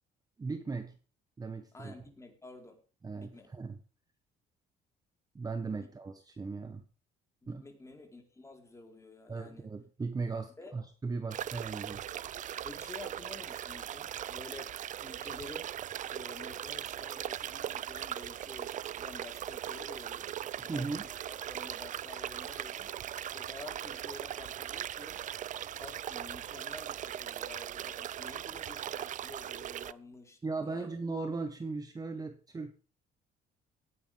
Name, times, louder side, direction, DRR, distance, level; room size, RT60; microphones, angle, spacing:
voice 1, 0.4-0.9 1.4-1.9 3.0-3.8 5.3-6.9 7.5-7.6 9.3-12.0 20.6-21.0 30.4-32.7, right 4 dB, 20° right, 8 dB, 1.5 m, -37 dB
voice 2, 1.7-2.8 3.1-3.5 5.8-5.9 7.4-9.7 10.6-10.7 12.6-15.8 16.1-20.3 20.6-23.1 23.3-25.3 25.7-30.4 30.6-30.9, left 2 dB, 15° left, 3 dB, 4.4 m, -50 dB
sound 1, 11.3-29.9, right 11 dB, 50° right, 0.6 m, -39 dB
18.0 x 10.0 x 3.6 m, 0.38 s
cardioid pair, 110°, 17 cm